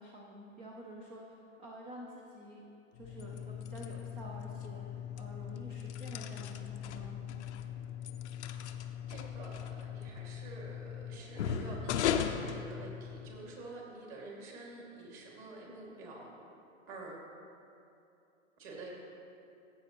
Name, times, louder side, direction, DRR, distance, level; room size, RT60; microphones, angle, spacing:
voice 1, 0.0-2.7 2.9-7.4, equal, 15° right, -2 dB, 0.5 m, -49 dB
sound 1, 2.9-13.4, left 8 dB, 55° left, 0.6 m, -38 dB
voice 2, 9.1-16.3 16.9-17.2 18.6-18.9, right 2 dB, 30° right, -2 dB, 2.2 m, -48 dB
15.0 x 7.4 x 2.9 m, 2.7 s
hypercardioid pair, 135°, 40 cm